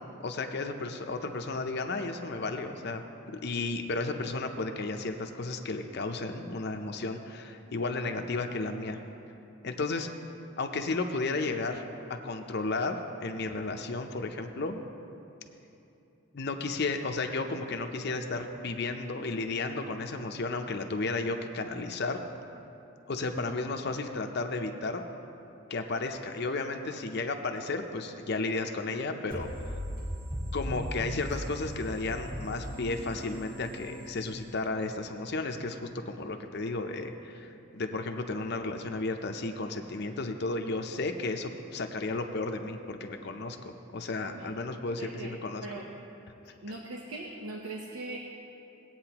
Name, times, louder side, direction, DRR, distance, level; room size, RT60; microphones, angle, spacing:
voice 1, 0.2-3.0 3.4-9.0 9.6-10.1 10.6-11.8 12.1-14.8 16.3-22.2 23.1-25.0 25.7-29.8 30.5-45.7, left 3 dB, 50° left, 5 dB, 0.6 m, -33 dB
sound 1, 29.3-34.9, equal, 40° right, 2.5 m, -38 dB
voice 2, 44.9-45.3 45.6-45.8 46.5-48.2, right 2 dB, 90° right, -1 dB, 0.9 m, -40 dB
18.5 x 8.7 x 2.9 m, 2.8 s
head